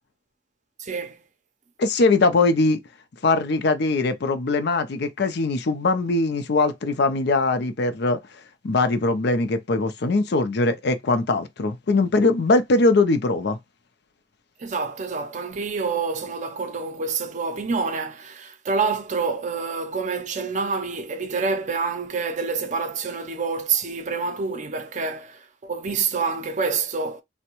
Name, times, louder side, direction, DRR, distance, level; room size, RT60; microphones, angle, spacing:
voice 1, 0.8-1.2 14.6-27.2, right 4 dB, 40° right, 0.5 m, -27 dB
voice 2, 1.8-2.8 3.2-8.2 8.6-13.6, left 3 dB, 65° left, 0.5 m, -21 dB
3.4 x 2.1 x 2.9 m
head